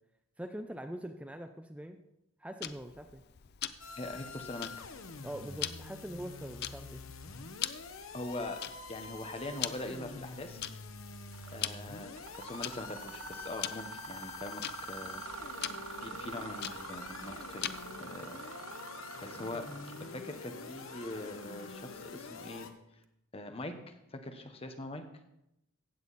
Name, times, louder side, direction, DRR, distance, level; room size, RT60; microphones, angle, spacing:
voice 1, 0.4-2.0 2.4-3.2 5.2-7.0, right 1 dB, 5° right, 7 dB, 0.5 m, -43 dB
Tick-tock, 2.6-18.0, left 11 dB, 50° left, 0.5 m, -44 dB
sound 1, 3.8-22.7, left 4 dB, 80° left, 1.0 m, -46 dB
voice 2, 4.0-4.9 8.1-8.6 8.9-10.6 11.5-12.1 12.4-15.6 16.0-17.7 18.0-18.4 19.2-19.7 20.0-22.7 23.3-25.0, left 2 dB, 30° left, 6 dB, 1.1 m, -42 dB
Mechanisms, 11.3-11.7 12.0-22.6, right 5 dB, 80° right, 0.8 m, -47 dB
15.5 x 8.1 x 4.1 m, 0.85 s
head